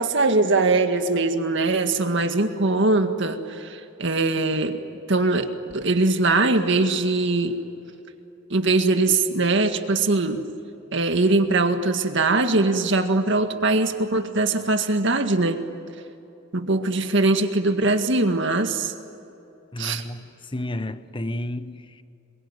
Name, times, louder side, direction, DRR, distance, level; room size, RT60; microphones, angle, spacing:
voice 1, 0.0-4.8 5.1-7.6 8.5-10.4 10.9-15.6 16.5-18.9 19.8-20.0, right 2 dB, 60° right, 1.9 m, -21 dB
voice 2, 19.7-22.0, left 1 dB, 25° left, 0.9 m, -32 dB
26.5 x 23.0 x 9.7 m
head